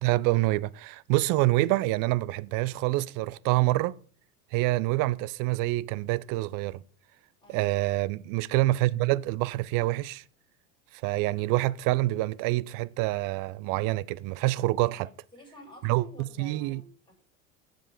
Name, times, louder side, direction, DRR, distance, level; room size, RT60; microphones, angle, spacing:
voice 1, 0.0-4.0 4.5-6.8 7.5-10.2 11.0-15.1 15.8-16.8, right 19 dB, 50° right, 0.6 m, -26 dB
voice 2, 7.4-7.8 14.7-17.3, left 1 dB, 10° left, 5.7 m, -51 dB
15.0 x 5.2 x 5.0 m
hypercardioid pair, 85°, 42 cm